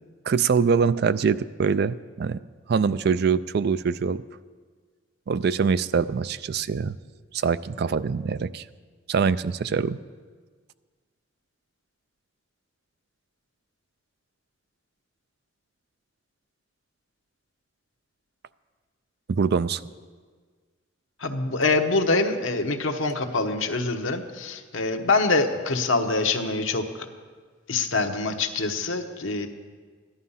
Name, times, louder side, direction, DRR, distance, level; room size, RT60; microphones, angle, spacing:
voice 1, 0.3-2.4 2.7-4.2 5.3-7.0 7.3-8.6 9.1-10.0 19.3-19.8, right 5 dB, 55° right, 15 dB, 0.4 m, -24 dB
voice 2, 21.2-26.9 27.7-29.5, left 3 dB, 90° left, 5 dB, 1.1 m, -25 dB
14.0 x 11.5 x 5.6 m, 1.6 s
head